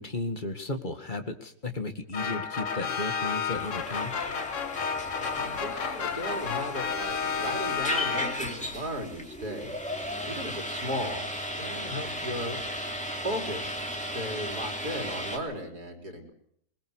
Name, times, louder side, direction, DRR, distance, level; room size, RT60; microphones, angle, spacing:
voice 1, 0.0-4.1, left 2 dB, 30° left, 6 dB, 2.2 m, -34 dB
sound 1, 2.1-8.7, left 6 dB, 55° left, 1.5 m, -31 dB
sound 2, 3.5-15.4, equal, 5° left, 2.9 m, -36 dB
voice 2, 5.3-9.9 10.3-11.3 11.5-12.6 13.2-16.3, equal, 75° right, 3 dB, 4.5 m, -36 dB
21.5 x 21.5 x 6.4 m, 0.68 s
omnidirectional pair, 1.7 m